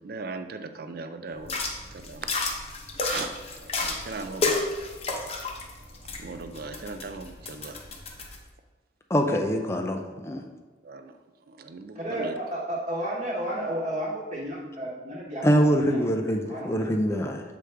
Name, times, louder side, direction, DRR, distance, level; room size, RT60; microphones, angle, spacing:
voice 1, 0.0-1.6 1.9-2.3 3.0-3.3 3.8-4.7 5.1-5.2 6.2-7.8 10.8-11.2 11.5-12.4, right 4 dB, 50° right, 9 dB, 0.4 m, -38 dB
sound 1, 1.4-8.4, left 3 dB, 35° left, 0.8 m, -32 dB
voice 2, 9.1-10.4 15.4-17.4, equal, 15° left, 4 dB, 0.4 m, -24 dB
voice 3, 11.9-16.0 16.5-16.9, right 1 dB, 30° right, -8 dB, 1.2 m, -32 dB
7.8 x 4.9 x 3.3 m, 1.3 s
head